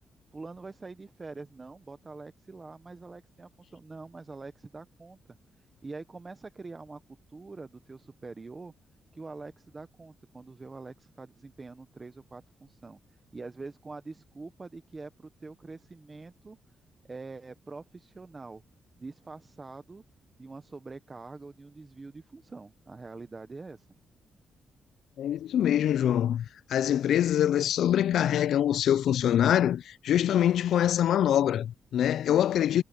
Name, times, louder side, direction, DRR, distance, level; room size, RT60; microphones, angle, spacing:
voice 1, 0.3-7.0 7.3-8.7 9.1-16.6 17.0-18.6 19.0-20.0 20.4-23.9, right 3 dB, 25° right, 0.8 m, -45 dB
voice 2, 25.2-32.8, left 10 dB, 75° left, 0.4 m, -24 dB
cardioid pair, 135°, 0 cm